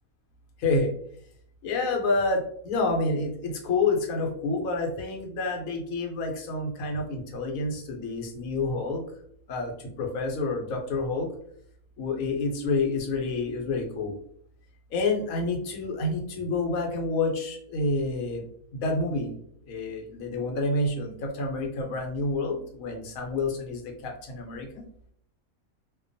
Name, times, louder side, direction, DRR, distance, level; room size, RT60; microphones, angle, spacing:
voice 1, 0.6-0.9 1.6-9.0 9.5-11.3 12.0-14.1 14.9-18.4 18.7-19.3 19.7-24.8, left 3 dB, 80° left, 2 dB, 1.1 m, -28 dB
2.4 x 2.2 x 2.5 m, 0.67 s
omnidirectional pair, 1.5 m